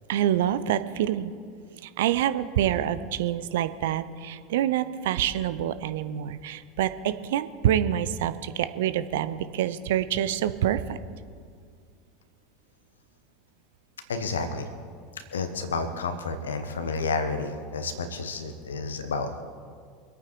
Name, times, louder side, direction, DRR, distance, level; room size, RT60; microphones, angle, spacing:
voice 1, 0.1-1.3 1.8-11.0, right 11 dB, 65° right, 13 dB, 0.7 m, -26 dB
voice 2, 14.1-14.7 15.3-19.4, left 4 dB, 75° left, 8 dB, 1.4 m, -30 dB
24.5 x 8.9 x 4.7 m, 2.1 s
figure-of-eight pair, 80°, 0 cm